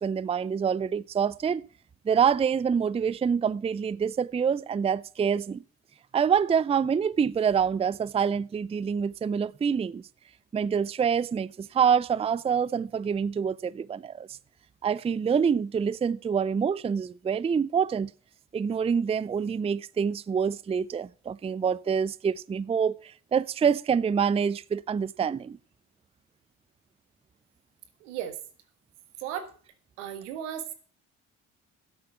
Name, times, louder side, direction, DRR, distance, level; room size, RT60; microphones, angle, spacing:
voice 1, 0.0-1.6 2.1-5.6 6.1-10.0 10.5-14.3 14.8-18.1 18.5-23.0 23.3-25.6, right 7 dB, 15° right, 0.4 m, -26 dB
voice 2, 28.0-28.4 29.2-29.5 30.0-30.7, right 9 dB, 90° right, 1.6 m, -35 dB
10.5 x 8.4 x 5.7 m
hypercardioid pair, 60°, 36 cm